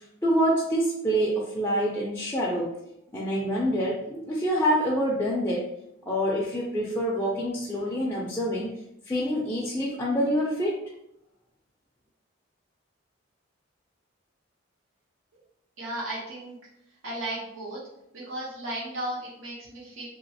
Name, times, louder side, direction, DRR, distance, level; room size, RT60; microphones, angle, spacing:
voice 1, 0.0-2.7 3.1-5.7 6.1-8.7 9.1-10.8, equal, 10° left, -4 dB, 0.4 m, -26 dB
voice 2, 15.8-16.6 17.0-17.8 18.1-20.0, right 1 dB, 75° right, -5 dB, 0.9 m, -35 dB
3.0 x 2.8 x 2.7 m, 0.79 s
head